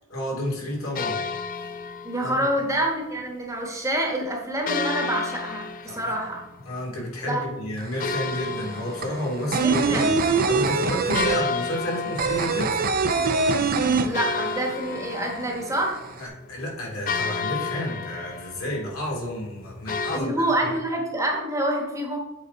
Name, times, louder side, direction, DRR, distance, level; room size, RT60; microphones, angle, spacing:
voice 1, 0.1-1.2 2.2-2.5 5.9-6.1 6.6-10.1 10.5-12.8 16.2-20.3 20.6-20.7, left 1 dB, 75° left, -2 dB, 2.3 m, -30 dB
sound 1, 0.9-2.6 4.7-7.1 8.0-10.0 10.3-10.4 11.1-13.1 13.6-13.7 14.1-20.2, left 5 dB, 40° left, 0.4 m, -32 dB
voice 2, 2.0-6.4 7.2-7.4 9.6-10.1 11.2-11.3 14.0-16.0 20.1-22.2, right 1 dB, 15° right, 0 dB, 1.1 m, -27 dB
sound 2, 7.8-7.9 8.1-14.7 15.0-15.1 15.4-16.2, right 4 dB, 45° right, 0.5 m, -23 dB
7.8 x 4.0 x 4.1 m, 1.0 s
head